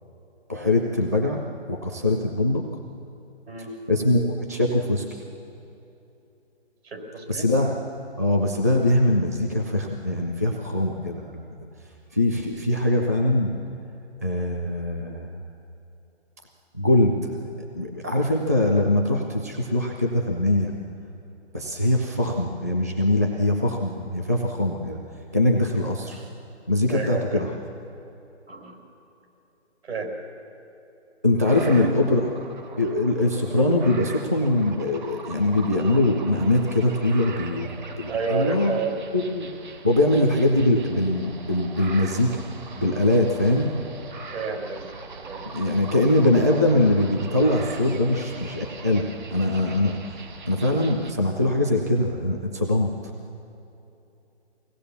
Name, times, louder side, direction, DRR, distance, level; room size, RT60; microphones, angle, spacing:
voice 1, 0.5-1.4 1.7-2.8 3.9-5.0 7.3-7.8 8.2-11.6 12.1-13.6 14.2-15.3 16.7-17.4 17.7-20.7 21.5-25.0 25.3-26.2 26.7-27.5 31.2-32.3 32.8-37.7 38.0-38.8 39.1-39.5 39.8-42.4 42.8-43.7 45.5-52.9, left 1 dB, 15° right, 1 dB, 0.5 m, -22 dB
voice 2, 6.8-7.5 26.9-27.4 28.5-28.8 29.8-30.1 31.6-31.9 38.1-38.9 44.3-44.9 45.3-45.5, right 4 dB, 65° right, 2 dB, 5.4 m, -30 dB
sound 1, 31.4-51.1, right 3 dB, 40° right, 1.7 m, -41 dB
24.5 x 18.0 x 7.1 m, 2.9 s
hypercardioid pair, 170°, 34 cm